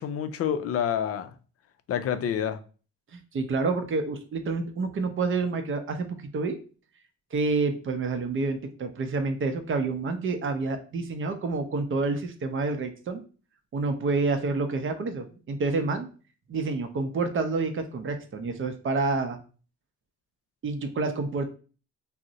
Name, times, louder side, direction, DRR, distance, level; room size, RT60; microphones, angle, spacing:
voice 1, 0.0-1.3 1.9-2.6, left 9 dB, 50° left, 0.4 m, -28 dB
voice 2, 3.1-6.6 7.3-13.2 13.7-16.1 16.5-19.4 20.6-21.5, right 3 dB, 45° right, 0.6 m, -28 dB
2.5 x 2.1 x 3.8 m
cardioid pair, 90°, 30 cm